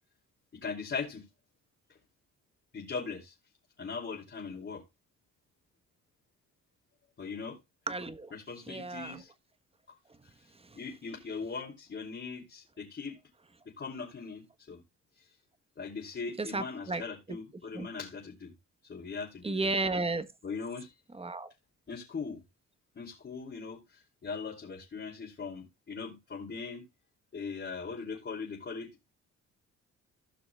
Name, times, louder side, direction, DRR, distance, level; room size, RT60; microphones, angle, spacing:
voice 1, 0.6-1.3 2.7-3.3 3.8-4.8 7.2-7.6 8.3-9.3 9.9-10.0 10.7-13.2 13.8-14.8 15.8-18.5 18.8-19.7 20.4-20.9 21.9-22.4 22.9-26.8 27.3-28.9, left 5 dB, 40° left, 3.1 m, -40 dB
voice 2, 7.9-8.3 8.7-9.2 16.4-17.0 17.7-17.9 19.4-20.3 21.1-21.5, right 3 dB, 20° right, 1.2 m, -33 dB
17.0 x 5.9 x 2.4 m
cardioid pair, 90°, 30 cm